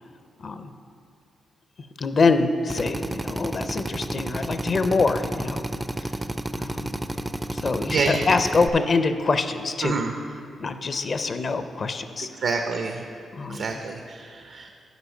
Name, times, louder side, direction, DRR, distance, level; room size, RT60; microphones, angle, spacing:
voice 1, 0.4-0.7 2.0-5.8 6.5-6.9 7.5-10.0 10.6-12.3 13.3-13.9, left 4 dB, 50° left, 10 dB, 0.5 m, -25 dB
Drill, 2.7-8.7, right 1 dB, 15° right, 0.4 m, -31 dB
voice 2, 7.9-8.2 9.8-10.1 12.4-13.0 13.5-14.7, right 4 dB, 75° right, 4 dB, 0.6 m, -27 dB
8.1 x 5.1 x 7.1 m, 2.5 s
cardioid pair, 85°, 0 cm